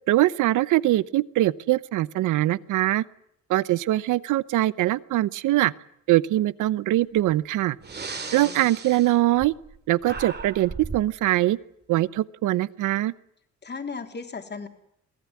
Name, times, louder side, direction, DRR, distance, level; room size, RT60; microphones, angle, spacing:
voice 1, 0.1-3.0 3.5-5.7 6.1-7.8 8.3-9.5 9.9-11.6 11.9-13.1, right 15 dB, 85° right, 19 dB, 0.8 m, -22 dB
Breathing, 7.2-7.3 7.8-9.8 10.0-11.1, right 4 dB, 35° right, 2.3 m, -36 dB
voice 2, 8.1-8.7 13.6-14.7, left 4 dB, 35° left, 6 dB, 3.2 m, -36 dB
23.5 x 16.5 x 9.5 m, 0.75 s
cardioid pair, 90°, 30 cm